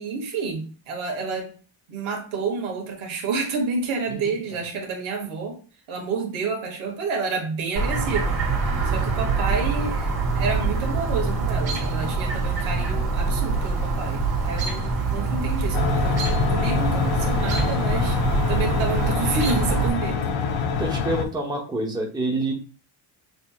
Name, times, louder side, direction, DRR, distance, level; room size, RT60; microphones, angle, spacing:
voice 1, 0.0-1.5 1.9-5.6 5.9-20.4, right 4 dB, 75° right, 2 dB, 1.4 m, -29 dB
Chirp tweet, 7.8-19.9, right 4 dB, 50° right, 1.5 m, -25 dB
sound 1, 15.7-21.2, left 5 dB, 75° left, 0.7 m, -25 dB
voice 2, 20.8-22.5, right 2 dB, 10° right, 0 dB, 0.9 m, -27 dB
6.5 x 2.8 x 2.3 m, 0.38 s
cardioid pair, 120°, 48 cm